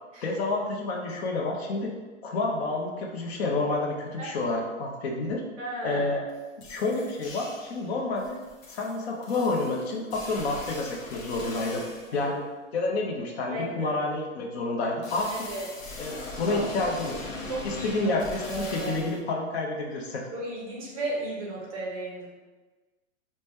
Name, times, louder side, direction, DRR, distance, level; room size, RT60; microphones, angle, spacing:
voice 1, 0.2-1.9 2.2-5.4 5.8-6.2 6.6-8.4 8.7-11.8 12.1-12.4 12.7-15.5 16.0-17.2 17.6-20.2, left 2 dB, 55° left, 0 dB, 0.6 m, -29 dB
voice 2, 5.6-6.1 12.1-12.3 13.5-14.0 15.5-15.7 16.4-16.7 17.5-18.1 18.5-19.0 20.3-22.3, right 1 dB, 30° right, -4 dB, 0.5 m, -34 dB
sound 1, 6.3-6.4 6.6-7.8 8.2-12.2 15.0-19.2, left 2 dB, 85° left, 0.8 m, -40 dB
2.7 x 2.1 x 3.3 m, 1.3 s
hypercardioid pair, 155°, 39 cm